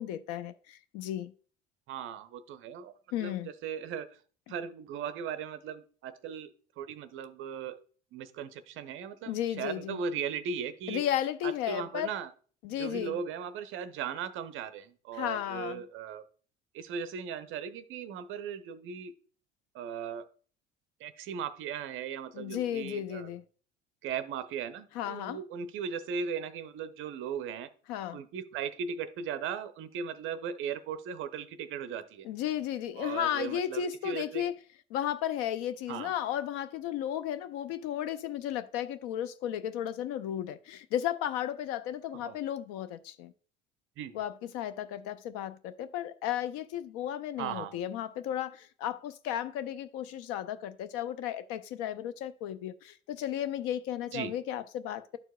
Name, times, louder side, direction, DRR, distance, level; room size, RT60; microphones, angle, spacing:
voice 1, 0.0-1.3 3.1-3.5 9.3-10.0 10.9-12.1 12.6-13.2 15.1-15.8 22.3-23.4 24.9-25.4 27.9-28.2 32.2-34.5 34.9-43.3 44.1-55.2, left 11 dB, 45° left, 0.5 m, -34 dB
voice 2, 1.9-2.9 3.2-3.4 3.6-4.1 4.5-7.8 8.1-11.0 11.4-12.3 12.8-16.2 16.7-19.1 19.7-20.2 21.0-23.3 24.0-27.7 28.1-32.3 33.0-34.5 35.9-36.1 42.1-42.4 44.0-44.1 47.4-47.7 54.1-54.3, right 7 dB, 40° right, 0.5 m, -37 dB
12.0 x 4.5 x 2.3 m
figure-of-eight pair, 65°, 34 cm